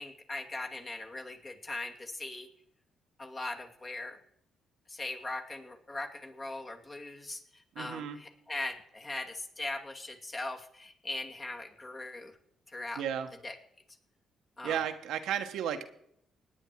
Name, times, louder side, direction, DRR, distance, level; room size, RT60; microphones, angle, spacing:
voice 1, 0.0-2.5 3.2-4.2 4.9-12.4 12.7-13.0 13.4-13.5 14.6-14.8, left 2 dB, 30° left, 2 dB, 2.5 m, -40 dB
voice 2, 7.7-8.2 13.0-13.3 14.6-15.9, right 9 dB, 85° right, 6 dB, 1.2 m, -33 dB
18.0 x 9.8 x 4.7 m, 0.70 s
cardioid pair, 90°, 0 cm